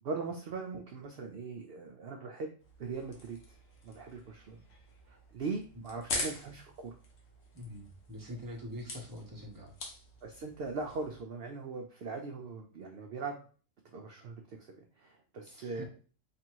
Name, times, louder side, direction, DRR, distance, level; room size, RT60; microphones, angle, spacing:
voice 1, 0.0-2.5 2.8-3.6 3.8-4.6 5.0-7.0 10.2-13.4 13.9-15.8, right 4 dB, 60° right, 2 dB, 0.7 m, -40 dB
sound 1, 2.6-11.2, left 2 dB, 80° left, 1.3 m, -44 dB
voice 2, 7.5-9.8 15.5-15.8, left 1 dB, 20° right, 0 dB, 0.9 m, -44 dB
3.3 x 2.6 x 4.5 m, 0.40 s
omnidirectional pair, 1.3 m